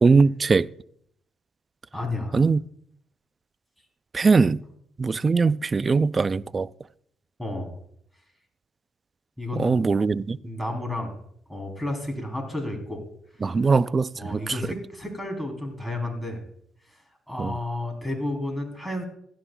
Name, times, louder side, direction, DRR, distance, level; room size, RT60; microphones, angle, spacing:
voice 1, 0.0-0.7 2.3-2.6 4.1-4.6 5.0-6.7 9.6-10.4 13.4-14.6 17.4-17.5, right 4 dB, 35° right, 0.3 m, -21 dB
voice 2, 1.9-2.4 7.4-7.7 9.4-9.9 10.4-11.1 11.5-13.0 13.4-13.5 14.1-16.4 17.3-19.0, left 1 dB, ahead, 3.2 m, -31 dB
16.0 x 11.5 x 2.2 m
cardioid pair, 90°, 0 cm